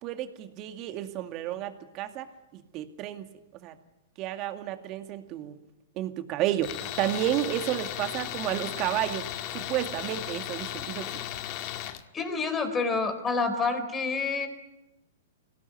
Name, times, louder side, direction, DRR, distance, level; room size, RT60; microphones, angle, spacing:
voice 1, 0.0-2.3 2.5-3.3 3.6-3.7 4.2-5.6 6.0-9.3 9.5-11.2, right 12 dB, 40° right, 8 dB, 2.2 m, -31 dB
Tools, 6.6-12.0, left 12 dB, 45° left, 1.8 m, -36 dB
voice 2, 12.1-14.5, left 4 dB, 20° left, 7 dB, 4.5 m, -28 dB
25.0 x 17.5 x 9.6 m, 1.0 s
hypercardioid pair, 120°, 0 cm